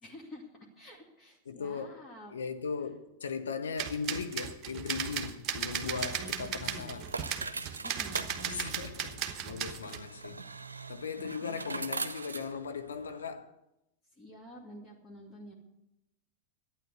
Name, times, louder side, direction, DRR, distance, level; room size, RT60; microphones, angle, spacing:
voice 1, 0.0-0.5 0.8-2.4 6.2-7.0 7.8-8.8 9.4-9.9 11.2-11.6 14.2-15.5, equal, 20° left, 2.2 m, -49 dB
voice 2, 1.5-2.0 2.3-7.1 8.5-10.4 10.9-13.5, left 5 dB, 70° left, 1.0 m, -38 dB
sound 1, 3.8-10.0, right 8 dB, 35° right, 1.1 m, -36 dB
sound 2, 5.6-13.3, right 3 dB, 75° right, 0.7 m, -42 dB
12.0 x 9.1 x 7.9 m
figure-of-eight pair, 90°, 0 cm